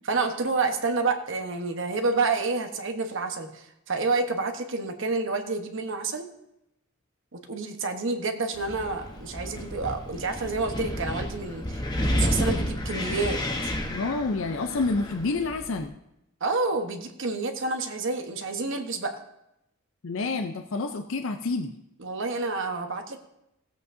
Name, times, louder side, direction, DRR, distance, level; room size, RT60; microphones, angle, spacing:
voice 1, 0.1-6.3 7.3-13.4 13.6-13.7 16.4-19.2 22.0-23.2, right 3 dB, 60° right, 5 dB, 1.1 m, -29 dB
Wind, 8.5-15.9, left 1 dB, 20° left, 1.0 m, -31 dB
voice 2, 13.9-15.9 20.0-21.7, left 3 dB, 65° left, 6 dB, 0.6 m, -28 dB
17.0 x 8.2 x 2.7 m, 0.85 s
head